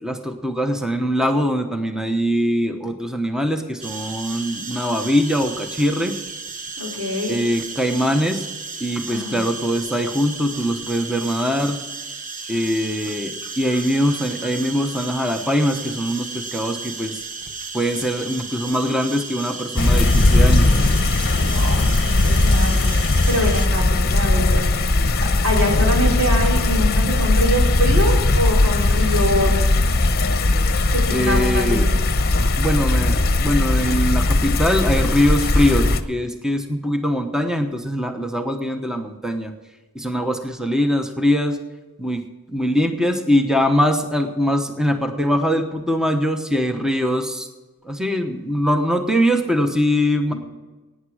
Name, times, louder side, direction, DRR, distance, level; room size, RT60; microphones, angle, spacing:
voice 1, 0.0-6.2 7.3-8.5 8.8-11.8 12.5-17.2 17.7-20.8 31.1-31.9 32.6-39.5 39.9-41.6 42.0-47.5 47.8-50.3, equal, 5° right, 5 dB, 1.0 m, -22 dB
sound 1, 3.8-23.7, right 4 dB, 35° right, 1.1 m, -34 dB
voice 2, 6.8-7.4 9.1-9.4 21.4-24.6 25.2-29.5 30.9-32.0 50.3-50.4, equal, 90° right, -2 dB, 4.8 m, -24 dB
sound 2, 19.8-36.0, left 2 dB, 45° left, 0.9 m, -18 dB
17.5 x 9.6 x 4.9 m, 1.2 s
head